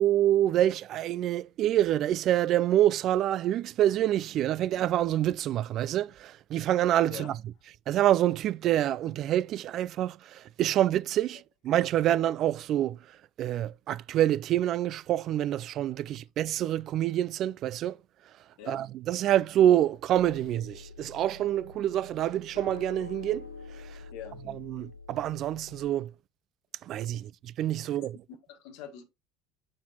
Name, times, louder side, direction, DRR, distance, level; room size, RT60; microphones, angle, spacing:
voice 1, 0.0-7.3 7.9-18.0 18.7-24.0 24.5-26.1 26.8-28.2, right 12 dB, 50° right, 0.3 m, -27 dB
sound 1, 20.2-25.9, left 4 dB, 90° left, 1.5 m, -46 dB
voice 2, 28.0-29.0, left 9 dB, 65° left, 1.5 m, -44 dB
7.5 x 5.7 x 2.9 m
figure-of-eight pair, 65°, 0 cm